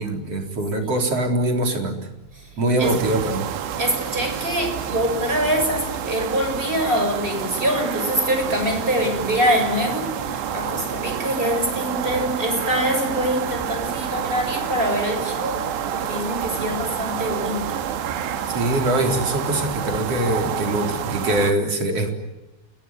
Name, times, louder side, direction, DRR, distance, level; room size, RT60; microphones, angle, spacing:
voice 1, 0.0-2.0 2.6-3.5 18.5-22.1, right 1 dB, 35° right, 3 dB, 4.6 m, -23 dB
sound 1, 2.8-21.5, right 9 dB, 75° right, 3.8 m, -28 dB
voice 2, 3.8-17.8, equal, 10° right, 4 dB, 6.9 m, -24 dB
29.0 x 21.0 x 9.5 m, 1.0 s
omnidirectional pair, 5.2 m